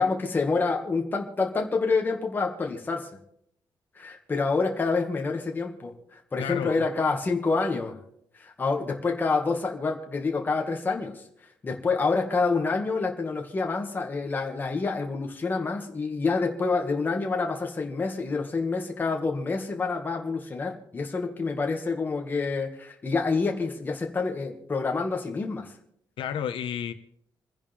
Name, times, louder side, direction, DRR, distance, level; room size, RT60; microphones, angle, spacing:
voice 1, 0.0-3.1 4.0-7.9 8.4-11.2 11.6-25.7, left 4 dB, 20° left, 2 dB, 2.1 m, -27 dB
voice 2, 6.4-6.8 26.2-26.9, left 9 dB, 80° left, 9 dB, 1.4 m, -31 dB
28.5 x 10.5 x 3.6 m, 0.70 s
wide cardioid pair, 180°, 9 cm